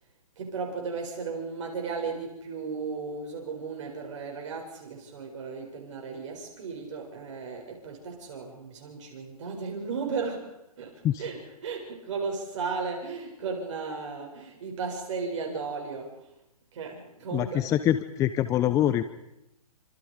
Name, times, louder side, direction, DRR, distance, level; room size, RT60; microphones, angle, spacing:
voice 1, 0.4-16.3 16.7-17.7, right 5 dB, 50° right, 1 dB, 7.5 m, -35 dB
voice 2, 17.3-19.0, left 11 dB, 15° left, 12 dB, 0.8 m, -24 dB
29.0 x 27.0 x 5.2 m, 0.89 s
hypercardioid pair, 140°, 20 cm